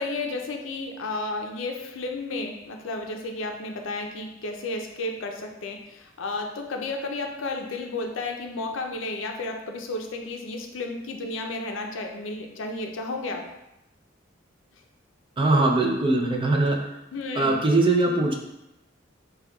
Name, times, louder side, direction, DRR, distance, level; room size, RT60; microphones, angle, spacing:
voice 1, 0.0-13.5 17.1-17.6, left 2 dB, 80° left, 3 dB, 0.5 m, -32 dB
voice 2, 15.4-16.8 17.4-18.3, right 2 dB, 25° right, 1 dB, 0.4 m, -21 dB
5.0 x 2.3 x 2.2 m, 0.92 s
head